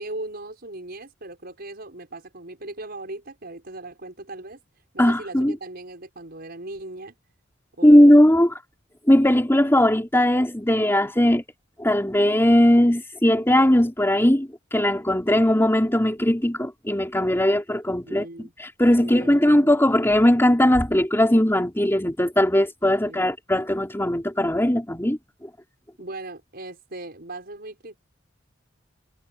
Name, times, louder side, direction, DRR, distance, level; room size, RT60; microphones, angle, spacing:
voice 1, 0.0-4.6 4.9-7.1 7.8-8.2 18.0-18.5 19.0-19.7 23.0-23.3 26.0-28.0, right 2 dB, 55° right, 6.1 m, -38 dB
voice 2, 5.0-5.5 7.8-8.5 9.1-11.4 11.8-18.3 18.6-25.2, left 1 dB, 15° left, 3.5 m, -19 dB
head